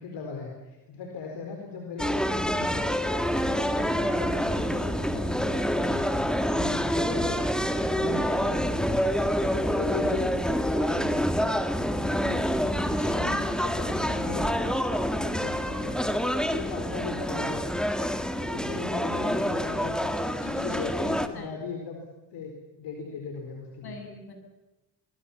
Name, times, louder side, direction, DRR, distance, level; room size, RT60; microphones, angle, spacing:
voice 1, 0.0-2.9 3.2-6.1 6.5-7.4 7.7-9.1 9.5-11.4 12.9-14.8 15.1-17.9 18.4-20.2 20.6-22.0 22.3-22.5 22.8-24.0, left 4 dB, 85° left, 2 dB, 4.4 m, -38 dB
sound 1, 2.0-21.3, equal, ahead, 2.0 m, -27 dB
voice 2, 12.2-13.4 18.7-18.8 20.4-21.5 23.8-24.3, left 3 dB, 65° left, 4 dB, 8.0 m, -42 dB
24.0 x 22.5 x 7.2 m, 1.0 s
cardioid pair, 95°, 40 cm